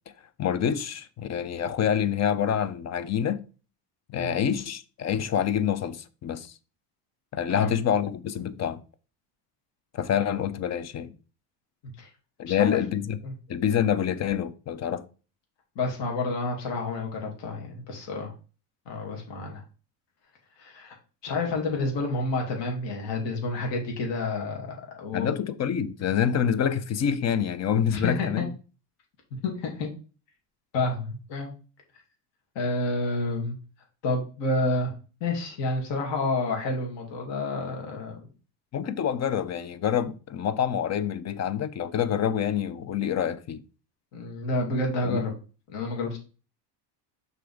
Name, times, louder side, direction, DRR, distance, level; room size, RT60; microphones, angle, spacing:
voice 1, 0.4-3.4 4.1-6.5 7.3-8.8 9.9-11.1 12.4-13.2 13.5-15.0 25.1-28.5 38.7-43.6 45.0-45.2, left 8 dB, 35° left, 0.6 m, -27 dB
voice 2, 12.5-12.8 13.2-13.3 15.8-18.3 18.9-19.6 20.6-21.0 21.2-24.7 25.0-25.3 27.9-28.4 29.4-29.9 30.7-31.5 32.6-33.6 34.0-34.9 35.2-38.2 44.1-45.3 45.7-46.2, left 2 dB, 60° left, 2.3 m, -29 dB
5.9 x 3.5 x 4.9 m
supercardioid pair, 100°, 49 cm